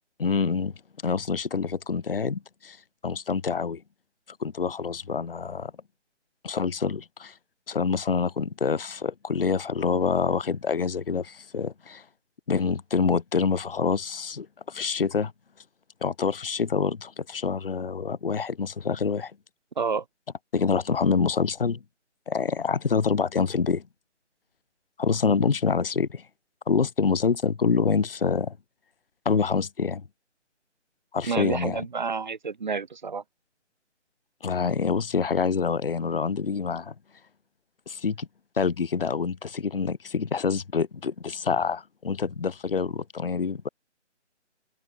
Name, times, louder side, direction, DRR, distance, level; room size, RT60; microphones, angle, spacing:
voice 1, 0.2-0.7 1.0-2.8 3.0-3.8 4.4-5.7 6.4-7.3 7.7-12.0 12.5-15.3 16.0-19.3 20.5-21.8 22.3-23.8 25.0-26.2 26.7-28.6 29.3-30.0 31.1-31.9 34.4-36.9 37.9-38.3 38.6-43.7, left 5 dB, 50° left, 0.6 m, -26 dB
voice 2, 31.2-33.2, right 5 dB, 40° right, 1.7 m, -29 dB
open air
figure-of-eight pair, 155°, 36 cm